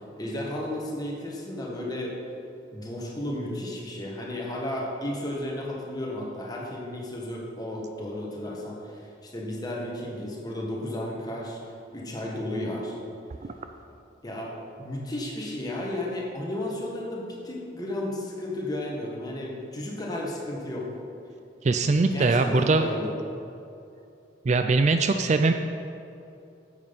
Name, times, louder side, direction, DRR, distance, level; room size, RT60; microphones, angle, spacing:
voice 1, 0.2-2.2 2.7-11.6 11.9-12.9 14.2-20.9 22.1-23.2, left 1 dB, 20° left, -2 dB, 1.6 m, -33 dB
voice 2, 21.6-22.9 24.5-25.5, right 3 dB, 40° right, 7 dB, 0.4 m, -21 dB
9.6 x 7.6 x 5.4 m, 2.7 s
head